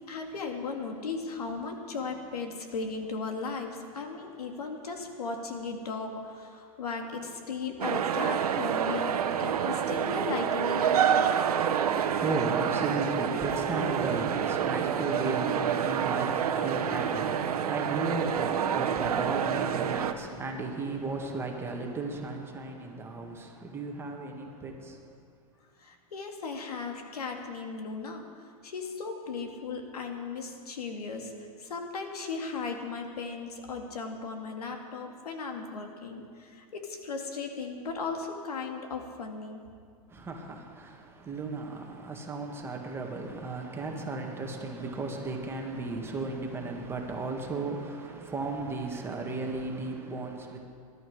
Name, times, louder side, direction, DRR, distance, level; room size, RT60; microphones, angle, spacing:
voice 1, 0.1-11.3 25.8-28.3 28.6-31.3 31.6-39.6, left 4 dB, 85° left, 2.2 m, -36 dB
sound 1, 7.8-20.1, right 8 dB, 80° right, 1.1 m, -28 dB
voice 2, 11.8-25.0 40.1-50.6, right 3 dB, 10° right, 1.9 m, -35 dB
20.0 x 11.5 x 4.9 m
hypercardioid pair, 135°, 19 cm